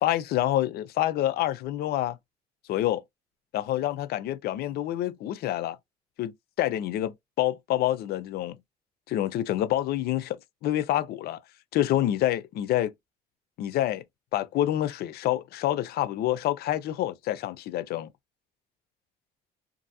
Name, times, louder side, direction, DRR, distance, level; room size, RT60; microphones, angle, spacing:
voice 1, 0.0-2.2 2.7-3.0 3.5-5.8 6.2-8.6 9.1-11.4 11.7-12.9 13.6-14.0 14.3-18.1, left 13 dB, 70° left, 0.5 m, -27 dB
2.6 x 2.5 x 2.6 m
cardioid pair, 110°, 17 cm